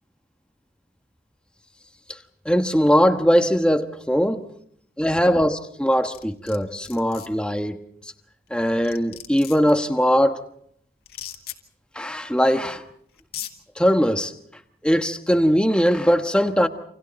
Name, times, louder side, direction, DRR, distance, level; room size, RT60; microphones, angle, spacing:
voice 1, 2.4-4.5 5.0-7.8 8.5-10.4 11.9-12.8 13.8-14.3 14.8-16.7, equal, 5° left, 1.2 m, -20 dB
sound 1, 6.1-6.6 6.8-7.3 8.5-8.6 8.8-9.7 11.1-11.6 12.7-12.8 13.2-13.5, left 11 dB, 55° left, 2.1 m, -36 dB
29.5 x 27.5 x 4.3 m
head